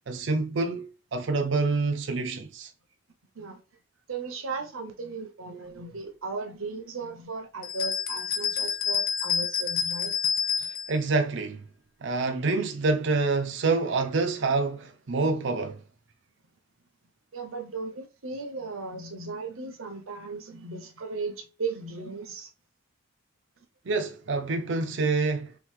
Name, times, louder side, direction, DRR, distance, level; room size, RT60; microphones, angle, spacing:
voice 1, 0.1-2.7 10.6-11.6 12.0-15.8 23.9-25.5, right 3 dB, 60° right, 0.5 m, -27 dB
voice 2, 4.1-10.2 17.3-22.5, right 4 dB, 90° right, 1.0 m, -36 dB
sound 1, 7.6-11.0, left 7 dB, 45° left, 0.5 m, -28 dB
3.4 x 3.0 x 3.7 m
head